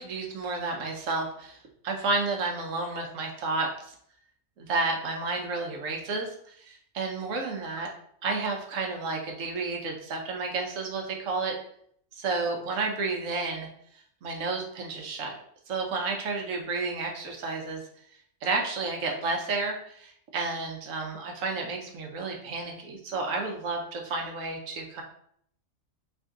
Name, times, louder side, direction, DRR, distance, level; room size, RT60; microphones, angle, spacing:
voice 1, 0.0-1.6 1.8-3.9 4.6-7.9 8.2-11.5 12.1-13.7 13.9-15.4 15.7-17.8 18.4-25.0, right 3 dB, 80° right, 2 dB, 1.1 m, -31 dB
3.6 x 2.5 x 3.6 m, 0.66 s
omnidirectional pair, 1.4 m